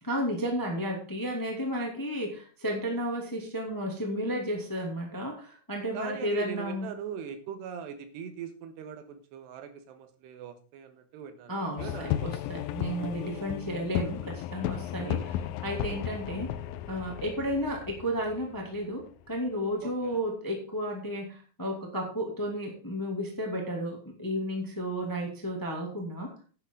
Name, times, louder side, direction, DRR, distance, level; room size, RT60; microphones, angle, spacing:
voice 1, 0.0-6.9 11.5-16.6 16.9-26.3, equal, 10° left, 1 dB, 1.4 m, -33 dB
voice 2, 5.9-12.3 15.0-15.3 15.9-16.1 19.8-20.2, right 8 dB, 80° right, 9 dB, 3.4 m, -41 dB
sound 1, 11.8-19.3, left 11 dB, 85° left, 2.0 m, -35 dB
10.5 x 9.9 x 3.9 m, 0.39 s
omnidirectional pair, 4.9 m